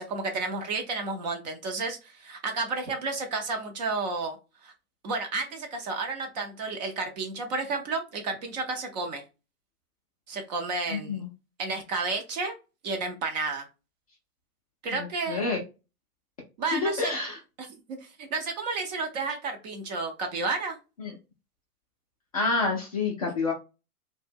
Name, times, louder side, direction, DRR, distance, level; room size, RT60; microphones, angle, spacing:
voice 1, 0.0-4.4 4.6-4.7 5.0-9.2 10.3-11.2 11.6-12.5 12.8-13.7 14.8-15.4 16.6-17.2 17.9-20.8, right 3 dB, 30° right, 4 dB, 0.5 m, -31 dB
voice 2, 10.9-11.3 14.9-15.6 16.7-17.4 21.0-21.2 22.3-23.5, left 3 dB, 30° left, -2 dB, 0.3 m, -28 dB
2.6 x 2.1 x 3.3 m, 0.29 s
figure-of-eight pair, 110°, 45 cm